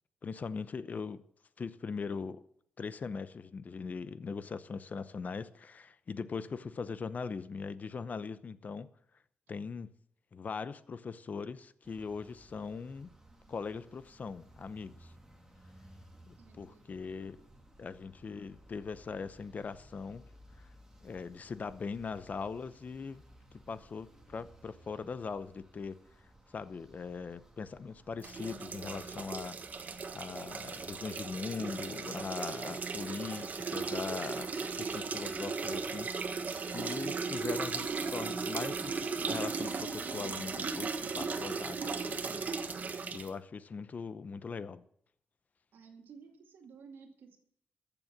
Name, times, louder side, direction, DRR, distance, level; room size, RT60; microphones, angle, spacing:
voice 1, 0.2-1.2 1.6-2.4 2.8-8.9 9.5-9.9 10.3-13.1 13.5-15.1 16.3-17.4 17.8-20.2 21.0-23.2 23.7-26.0 26.5-29.5 30.1-36.4 36.7-42.5 42.8-44.8, left 5 dB, 50° left, 0.8 m, -40 dB
sound 1, 11.8-31.4, right 1 dB, 15° right, 2.5 m, -59 dB
voice 2, 16.4-16.9 45.7-47.4, right 5 dB, 85° right, 2.2 m, -54 dB
sound 2, 28.2-43.3, right 4 dB, 50° right, 1.3 m, -37 dB
14.5 x 7.0 x 7.3 m
cardioid pair, 75°, 3 cm